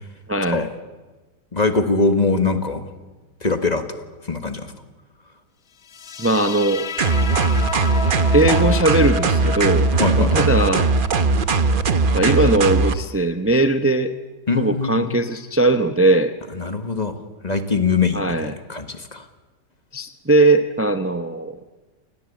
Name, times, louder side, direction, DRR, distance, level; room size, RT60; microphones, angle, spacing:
voice 1, 0.3-0.7 6.2-6.9 8.3-9.9 10.2-10.9 12.1-14.1 14.6-16.3 18.1-18.5 19.9-21.6, right 2 dB, 15° right, 9 dB, 0.4 m, -19 dB
voice 2, 1.5-2.8 3.4-3.8 4.2-4.7 10.0-10.5 14.5-15.2 16.5-19.3, left 4 dB, 25° left, 8 dB, 1.6 m, -22 dB
sound 1, 5.8-12.9, left 6 dB, 45° left, 1.0 m, -33 dB
sound 2, 7.0-13.0, right 3 dB, 35° right, 0.9 m, -19 dB
29.5 x 18.0 x 8.5 m, 1.2 s
omnidirectional pair, 1.9 m